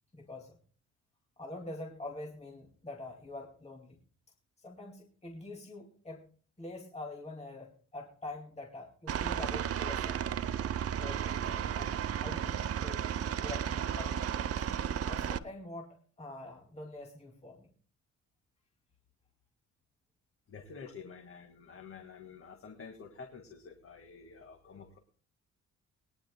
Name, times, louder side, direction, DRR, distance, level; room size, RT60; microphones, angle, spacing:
voice 1, 0.1-0.6 1.4-4.0 4.6-6.2 6.6-10.2 11.0-13.0 13.4-14.2 15.0-17.7, left 2 dB, 20° left, 0 dB, 2.3 m, -45 dB
Aircraft, 9.1-15.4, right 9 dB, 50° right, 0.8 m, -33 dB
voice 2, 20.5-25.0, left 5 dB, 45° left, 4 dB, 1.8 m, -49 dB
22.0 x 10.5 x 2.2 m, 0.43 s
cardioid pair, 90°, 30 cm